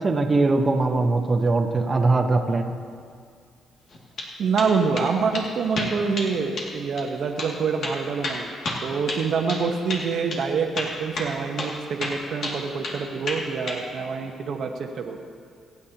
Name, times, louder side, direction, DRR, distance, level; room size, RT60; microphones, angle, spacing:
voice 1, 0.0-2.7, right 3 dB, 35° right, 3 dB, 1.1 m, -21 dB
sound 1, 3.9-4.3 4.6-5.1 5.3-5.5 5.8-6.3 6.6-6.7 7.0-7.1 7.4-7.5 7.8-9.6 9.9-10.1 10.3-10.4 10.8-11.7 12.0-13.0 13.3-13.8, left 2 dB, 60° left, 2.3 m, -30 dB
voice 2, 4.4-8.5 8.8-15.2, right 5 dB, 65° right, 2 dB, 1.1 m, -26 dB
26.5 x 9.5 x 2.9 m, 2.2 s
cardioid pair, 90°, 0 cm